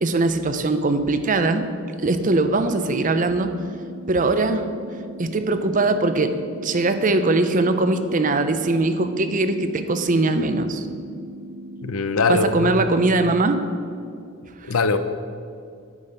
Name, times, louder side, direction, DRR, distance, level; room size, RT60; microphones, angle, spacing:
voice 1, 0.0-1.7 2.0-3.5 4.1-4.7 5.2-6.3 6.6-10.8 12.3-13.6, right 2 dB, 40° right, 9 dB, 0.6 m, -21 dB
sound 1, 1.9-11.9, right 1 dB, 85° right, 1.1 m, -39 dB
voice 2, 11.8-12.8 14.7-15.0, left 4 dB, 80° left, 10 dB, 0.7 m, -21 dB
11.0 x 5.7 x 7.9 m, 2.3 s
head